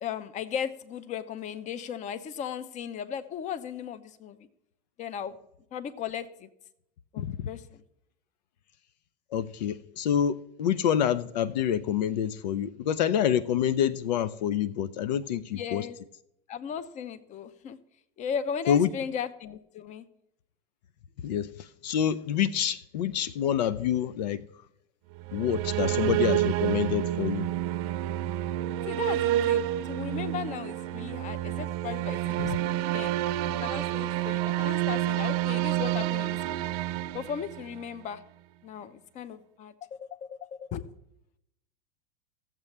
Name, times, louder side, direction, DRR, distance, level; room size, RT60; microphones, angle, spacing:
voice 1, 0.0-4.5 5.0-5.4 5.7-6.5 7.1-7.8 15.5-16.0 16.5-17.8 18.2-20.0 28.9-33.1 33.5-36.7 37.1-38.2 38.6-40.9, left 8 dB, 35° left, 0.7 m, -36 dB
voice 2, 7.2-7.5 9.3-15.9 18.7-18.9 21.2-24.4 25.3-27.5 32.4-32.5, left 9 dB, 85° left, 0.5 m, -27 dB
sound 1, 25.1-38.0, right 13 dB, 60° right, 0.6 m, -29 dB
15.5 x 7.3 x 3.3 m
supercardioid pair, 115°, 21 cm